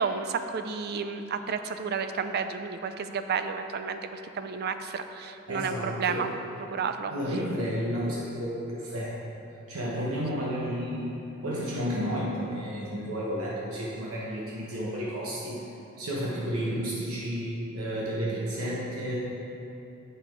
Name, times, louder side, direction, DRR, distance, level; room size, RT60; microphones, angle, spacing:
voice 1, 0.0-6.3 6.7-7.1 10.0-10.1 18.3-18.5, right 6 dB, 50° right, 9 dB, 0.4 m, -31 dB
voice 2, 5.5-6.2 7.1-9.1 9.7-11.2 11.4-15.6 16.0-19.2, equal, 80° right, -5 dB, 1.1 m, -31 dB
8.2 x 5.6 x 4.5 m, 2.9 s
head